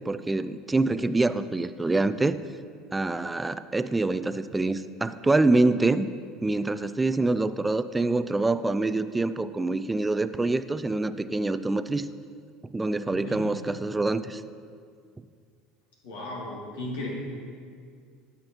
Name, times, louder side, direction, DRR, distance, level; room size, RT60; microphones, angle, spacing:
voice 1, 0.1-2.4 2.9-6.1 6.4-12.1 12.7-14.4, right 2 dB, 15° right, 13 dB, 0.3 m, -25 dB
voice 2, 13.1-13.6 16.0-17.1, left 2 dB, 80° left, -4 dB, 2.2 m, -36 dB
12.0 x 5.8 x 3.0 m, 2.2 s
hypercardioid pair, 80°, 0 cm